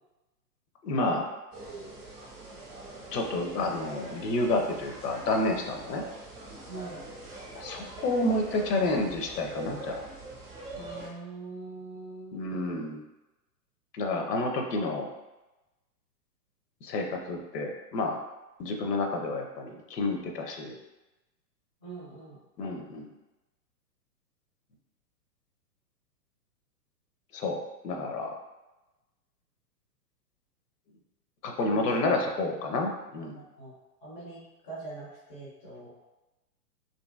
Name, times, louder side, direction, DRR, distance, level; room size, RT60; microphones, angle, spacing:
voice 1, 0.8-1.3 3.1-6.0 7.5-10.0 12.3-13.0 13.9-15.1 16.8-18.2 18.6-20.7 22.6-23.1 27.3-28.3 31.4-33.4, left 2 dB, 75° left, 3 dB, 0.7 m, -29 dB
sound 1, 1.5-11.1, right 2 dB, 25° right, 0.8 m, -43 dB
voice 2, 6.7-7.1 10.7-12.8 21.8-22.4 31.6-31.9 33.2-33.7 34.0-35.9, right 3 dB, 15° left, -6 dB, 0.4 m, -43 dB
2.7 x 2.6 x 2.3 m, 1.0 s
hypercardioid pair, 120°, 49 cm